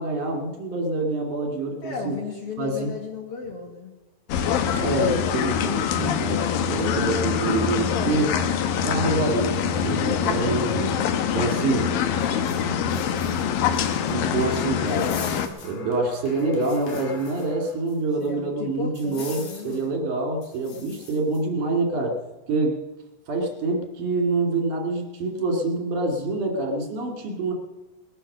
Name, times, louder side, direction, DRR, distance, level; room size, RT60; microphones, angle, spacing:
voice 1, 0.0-2.1 2.6-2.9 4.8-6.4 6.7-8.4 8.8-11.0 11.3-11.9 14.1-15.1 15.6-22.2 22.5-22.8 23.3-27.5, right 2 dB, 65° right, 2 dB, 3.6 m, -26 dB
voice 2, 1.8-3.9 11.2-12.0 12.2-13.2 18.2-19.9, left 5 dB, 50° left, 2 dB, 2.1 m, -35 dB
sound 1, 4.3-15.5, left 7 dB, 85° left, 2.8 m, -24 dB
sound 2, 12.2-18.0 18.2-18.3 19.0-19.9 20.4-21.4, left 4 dB, 70° left, 3.7 m, -42 dB
20.0 x 9.0 x 6.7 m, 1.1 s
omnidirectional pair, 4.0 m